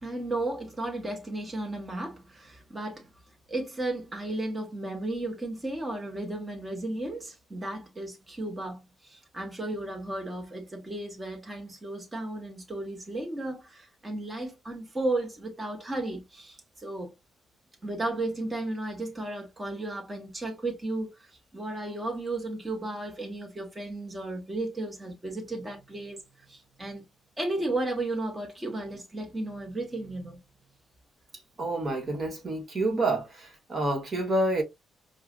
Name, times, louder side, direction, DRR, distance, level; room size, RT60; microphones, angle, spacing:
voice 1, 0.0-3.1 3.5-17.1 17.8-26.2 26.5-27.0 27.4-30.4, right 2 dB, 20° right, 1.3 m, -34 dB
voice 2, 31.6-34.6, right 2 dB, 40° right, 1.4 m, -28 dB
4.7 x 2.4 x 2.4 m
cardioid pair, 90°, 0 cm